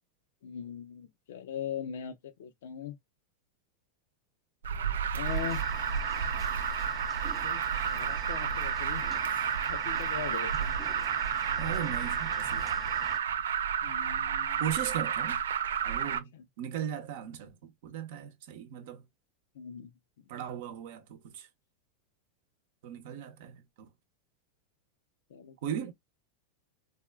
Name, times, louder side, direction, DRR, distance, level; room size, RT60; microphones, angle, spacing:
voice 1, 0.4-3.0 5.1-5.6 7.4-9.0 9.7-10.8 13.8-14.7 16.0-16.5 19.5-19.9 25.3-25.8, left 8 dB, 80° left, 0.6 m, -40 dB
Alarm, 4.6-16.2, right 7 dB, 90° right, 0.3 m, -31 dB
sound 1, 5.2-13.2, right 3 dB, 20° right, 0.5 m, -42 dB
voice 2, 11.6-12.8 14.6-15.4 15.8-19.0 20.3-21.5 22.8-23.9 25.6-25.9, right 9 dB, 65° right, 0.7 m, -38 dB
3.5 x 2.3 x 2.2 m
hypercardioid pair, 120°, 0 cm